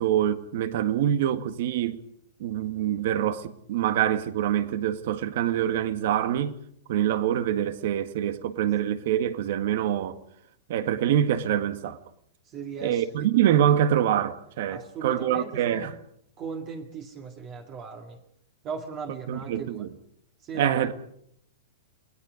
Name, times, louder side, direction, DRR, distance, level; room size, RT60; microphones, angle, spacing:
voice 1, 0.0-2.0 2.4-6.6 6.9-10.2 10.7-12.0 12.8-15.9 19.3-19.9 20.5-20.9, right 10 dB, 55° right, 1.8 m, -25 dB
voice 2, 12.5-13.1 14.7-15.9 16.4-18.2 18.6-19.9 20.4-20.9, right 5 dB, 25° right, 2.0 m, -37 dB
30.0 x 20.0 x 5.2 m
supercardioid pair, 160°, 0 cm